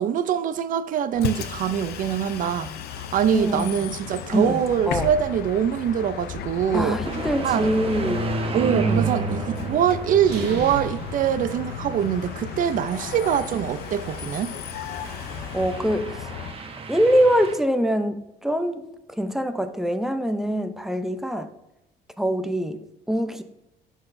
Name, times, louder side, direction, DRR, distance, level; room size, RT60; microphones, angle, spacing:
voice 1, 0.0-7.0 7.4-7.7 8.5-14.6, right 9 dB, 50° right, 0.5 m, -24 dB
Bus, 1.1-16.6, left 8 dB, 70° left, 0.6 m, -35 dB
voice 2, 3.3-3.9 4.3-4.6 4.9-5.1 6.7-8.3 8.7-9.1 15.5-16.3 16.9-21.5 22.2-22.8 23.1-23.4, equal, ahead, 0.5 m, -24 dB
sound 1, 7.0-17.5, right 4 dB, 35° right, 0.8 m, -32 dB
sound 2, 10.2-12.3, right 4 dB, 85° right, 0.8 m, -37 dB
12.0 x 4.0 x 2.6 m
cardioid pair, 110°, 17 cm